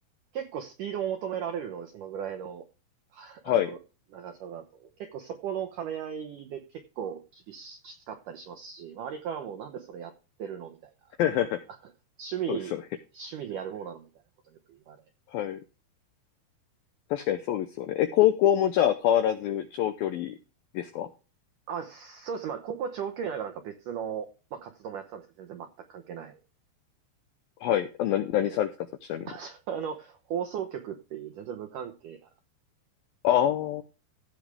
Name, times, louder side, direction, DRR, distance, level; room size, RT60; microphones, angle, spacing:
voice 1, 0.3-2.6 3.1-3.8 4.1-10.1 10.4-10.9 12.2-12.7 13.1-14.1 14.7-15.0 21.7-26.4 28.4-28.6 29.3-32.3, right 8 dB, 80° right, 6 dB, 1.8 m, -36 dB
voice 2, 11.2-11.6 12.5-12.8 15.3-15.6 17.1-20.4 20.7-21.1 27.6-28.7 29.0-29.3 33.2-33.8, left 11 dB, 85° left, 9 dB, 2.1 m, -25 dB
16.0 x 6.4 x 3.4 m, 0.33 s
omnidirectional pair, 5.1 m